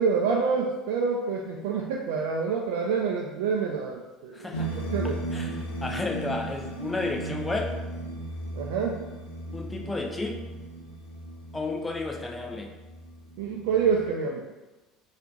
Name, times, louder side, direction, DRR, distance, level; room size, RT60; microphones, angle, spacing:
voice 1, 0.0-4.5 4.8-5.2 8.5-9.0 13.4-14.5, right 5 dB, 65° right, -1 dB, 0.4 m, -27 dB
voice 2, 4.3-4.8 5.3-7.7 9.5-10.4 11.5-12.7, left 3 dB, 15° left, 1 dB, 0.6 m, -32 dB
sound 1, 4.5-14.1, right 1 dB, 75° left, 0.5 m, -36 dB
4.2 x 2.5 x 4.0 m, 1.1 s
figure-of-eight pair, 60°, 0 cm